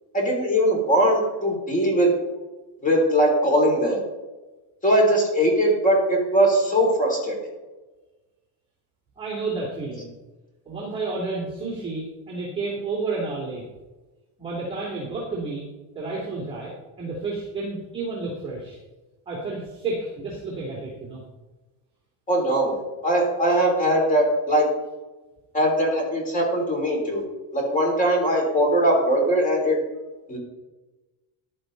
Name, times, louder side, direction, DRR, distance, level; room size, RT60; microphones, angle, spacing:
voice 1, 0.1-2.1 2.8-4.0 4.8-7.3 22.3-24.7 25.5-27.2 27.5-29.8 30.3-30.4, right 1 dB, 20° left, 1 dB, 3.5 m, -20 dB
voice 2, 9.2-10.1 10.7-13.6 14.4-15.6 15.9-18.8 19.3-21.2, right 3 dB, 15° right, -4 dB, 2.8 m, -31 dB
13.5 x 11.5 x 4.0 m, 1.2 s
cardioid pair, 165°, 39 cm